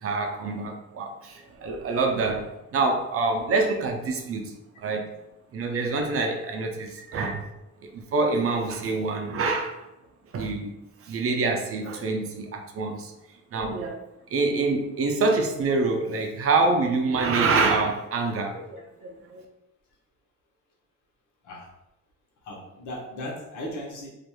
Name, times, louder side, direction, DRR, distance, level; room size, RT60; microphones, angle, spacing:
voice 1, 0.0-5.1 5.5-7.5 7.9-9.9 10.3-10.7 11.0-13.1 13.5-14.0 14.3-19.5, right 3 dB, 50° right, 3 dB, 0.5 m, -26 dB
voice 2, 22.4-24.1, left 1 dB, 75° left, -2 dB, 0.9 m, -36 dB
2.9 x 2.5 x 2.2 m, 0.90 s
cardioid pair, 90°, 30 cm